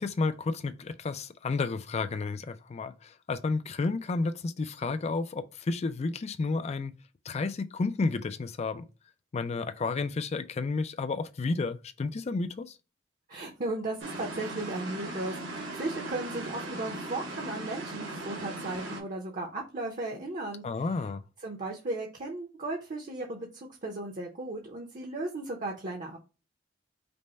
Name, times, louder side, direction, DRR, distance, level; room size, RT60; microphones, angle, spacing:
voice 1, 0.0-6.9 7.3-8.9 9.3-12.7 20.6-21.2, left 3 dB, 35° left, 0.4 m, -31 dB
voice 2, 13.3-20.6 21.4-26.2, right 2 dB, 45° right, 0.8 m, -36 dB
sound 1, 14.0-19.0, right 2 dB, 75° right, 1.5 m, -38 dB
5.2 x 2.1 x 4.2 m
head